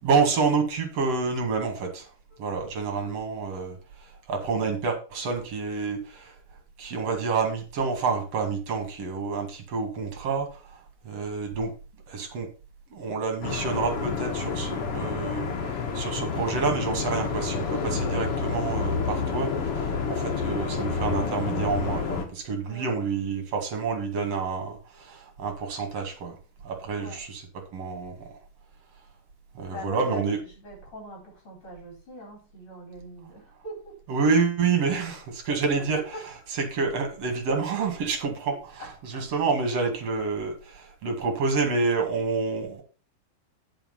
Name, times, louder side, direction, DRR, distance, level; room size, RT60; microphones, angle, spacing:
voice 1, 0.0-2.1 2.4-6.4 6.8-11.7 12.1-12.5 12.9-26.4 26.6-27.4 27.7-28.4 29.5-30.4 34.1-36.2 36.5-42.8, right 4 dB, 45° right, 3 dB, 2.5 m, -28 dB
voice 2, 2.3-3.0 22.7-22.9 27.0-27.2 29.7-34.0 36.9-37.0, equal, 30° left, 0 dB, 4.8 m, -43 dB
sound 1, 13.4-22.2, left 5 dB, 60° left, 1.6 m, -29 dB
8.8 x 5.6 x 5.4 m, 0.34 s
omnidirectional pair, 4.8 m